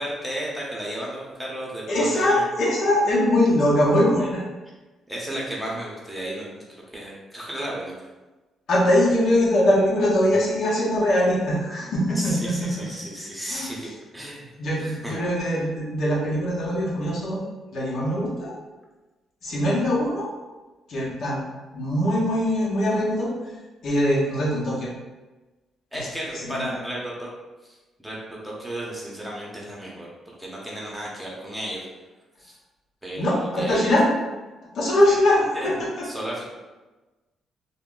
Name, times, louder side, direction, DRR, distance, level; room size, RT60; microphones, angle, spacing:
voice 1, 0.0-2.4 5.1-6.6 6.9-7.9 12.1-14.5 14.8-15.2 25.9-27.3 27.6-30.1 30.4-31.8 32.4-32.5 33.0-33.8 35.5-35.7 36.0-36.4, right 1 dB, 5° right, -4 dB, 0.9 m, -33 dB
voice 2, 1.9-4.4 8.7-12.7 13.5-13.7 14.6-17.4 17.7-18.6 19.4-20.3 20.9-21.4 21.7-23.3 23.8-24.9 25.9-26.1 26.4-26.7 33.1-34.1 34.7-36.0, left 1 dB, 65° left, -6 dB, 0.9 m, -22 dB
2.2 x 2.0 x 3.7 m, 1.2 s
supercardioid pair, 65°, 0 cm